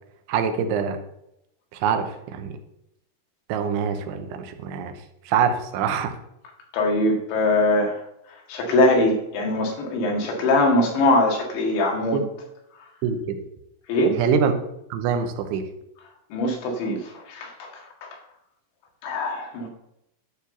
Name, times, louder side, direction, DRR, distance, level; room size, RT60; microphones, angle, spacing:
voice 1, 0.3-1.0 1.7-2.5 3.5-4.9 5.3-6.1 12.1-12.2 13.0-13.4 14.2-14.5 14.9-15.6, right 6 dB, 85° right, 7 dB, 3.3 m, -24 dB
voice 2, 6.7-8.0 8.5-12.2 13.9-14.2 16.3-18.2 19.0-19.7, left 2 dB, 75° left, 1 dB, 4.1 m, -22 dB
11.5 x 4.8 x 6.8 m, 0.82 s
omnidirectional pair, 5.3 m